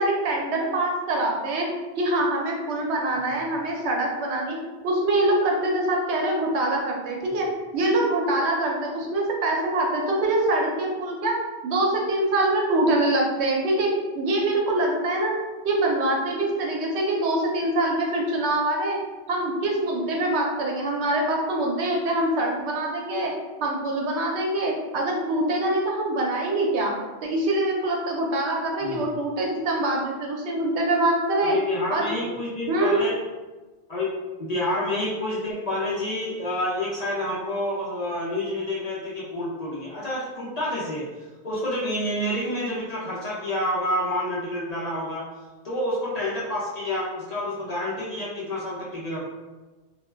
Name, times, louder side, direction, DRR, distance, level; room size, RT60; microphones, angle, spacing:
voice 1, 0.0-1.7 2.0-4.6 4.8-7.5 7.7-11.4 11.6-13.9 14.1-15.3 15.6-19.0 19.3-23.3 23.6-26.9 27.2-31.6 31.9-32.2 32.7-33.0, right 1 dB, 80° right, -1 dB, 0.9 m, -24 dB
voice 2, 31.4-33.2 33.9-34.1 34.4-41.0 41.4-45.3 45.6-49.3, left 1 dB, 45° left, -7 dB, 0.6 m, -28 dB
2.4 x 2.2 x 3.2 m, 1.2 s
omnidirectional pair, 1.1 m